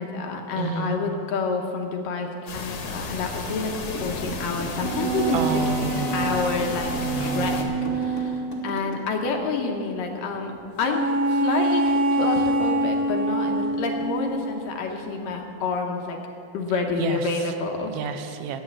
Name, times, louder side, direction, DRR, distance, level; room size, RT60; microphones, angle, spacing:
voice 1, 0.0-5.4 5.9-6.9 7.2-7.6 7.9-10.5 10.8-16.2 16.5-17.9, left 4 dB, 70° left, 2 dB, 2.4 m, -28 dB
voice 2, 0.6-1.0 5.3-6.4 6.9-7.7 17.0-17.4 17.9-18.6, right 5 dB, 85° right, 8 dB, 2.6 m, -30 dB
sound 1, 2.5-7.6, left 4 dB, 55° left, 2.0 m, -33 dB
sound 2, 3.6-8.9, right 1 dB, 35° left, 1.2 m, -37 dB
sound 3, 4.8-8.4 10.8-14.7, right 2 dB, 55° right, 2.0 m, -25 dB
14.0 x 9.2 x 7.2 m, 2.7 s
omnidirectional pair, 4.4 m